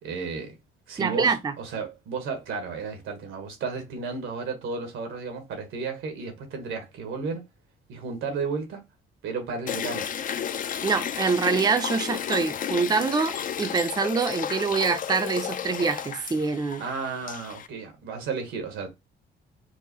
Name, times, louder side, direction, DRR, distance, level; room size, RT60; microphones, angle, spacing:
voice 1, 0.0-0.5 0.9-7.4 7.9-8.8 9.2-10.1 16.8-18.9, right 5 dB, 90° right, 1.3 m, -33 dB
voice 2, 1.0-1.5 10.8-16.8, right 5 dB, 20° right, 0.5 m, -25 dB
sound 1, 9.7-17.7, left 8 dB, 45° left, 0.4 m, -32 dB
4.6 x 2.0 x 2.9 m
cardioid pair, 90°, 20 cm